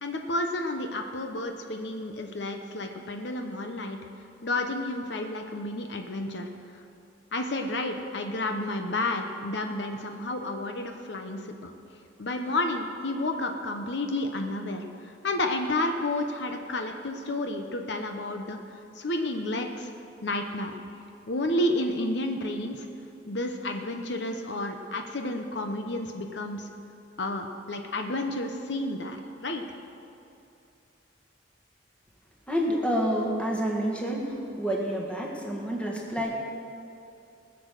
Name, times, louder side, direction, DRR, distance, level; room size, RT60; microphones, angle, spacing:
voice 1, 0.0-4.0 4.4-6.5 6.7-6.8 7.3-11.7 12.2-18.6 19.0-19.9 20.2-20.8 21.3-22.9 23.3-26.7 27.2-29.6, left 1 dB, 65° left, 4 dB, 0.9 m, -31 dB
voice 2, 32.5-36.3, equal, 5° left, -1 dB, 1.8 m, -28 dB
20.0 x 7.0 x 6.6 m, 2.7 s
head